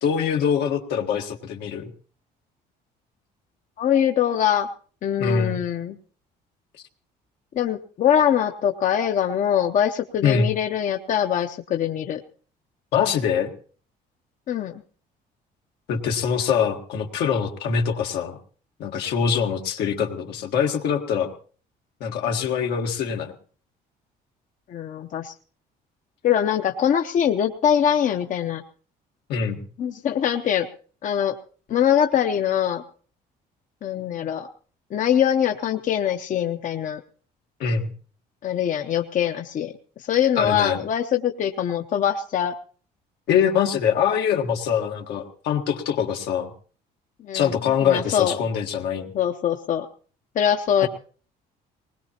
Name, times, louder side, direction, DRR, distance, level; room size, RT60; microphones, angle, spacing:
voice 1, 0.0-1.9 5.2-5.6 10.2-10.5 12.9-13.5 15.9-18.4 18.8-21.3 22.0-23.3 29.3-29.6 37.6-37.9 40.4-40.8 43.3-46.5 47.3-49.1 50.8-50.9, left 7 dB, 80° left, 3 dB, 1.5 m, -23 dB
voice 2, 3.8-4.7 5.0-6.0 7.5-12.2 14.5-14.8 24.7-25.3 26.2-28.6 29.8-30.7 31.0-31.4 31.7-32.8 33.8-34.5 34.9-37.0 38.4-39.7 40.0-42.5 47.2-47.5 47.8-48.4 49.1-49.9 50.3-50.9, left 9 dB, 50° left, 6 dB, 0.8 m, -23 dB
20.0 x 19.5 x 2.9 m, 0.42 s
cardioid pair, 110°, 17 cm